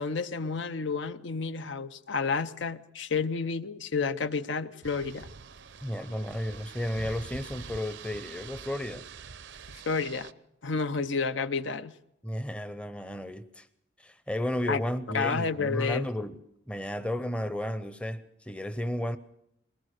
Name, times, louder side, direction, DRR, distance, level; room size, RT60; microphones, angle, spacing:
voice 1, 0.0-5.3 9.7-10.3 10.6-11.9 14.7-14.8 15.1-16.1, left 4 dB, 70° left, 11 dB, 0.8 m, -30 dB
sound 1, 4.8-10.3, right 5 dB, 65° right, 0.7 m, -45 dB
voice 2, 5.8-9.0 12.2-13.7 14.0-16.4 16.7-19.2, left 1 dB, 5° left, 12 dB, 0.7 m, -33 dB
21.5 x 19.0 x 6.6 m, 0.79 s
head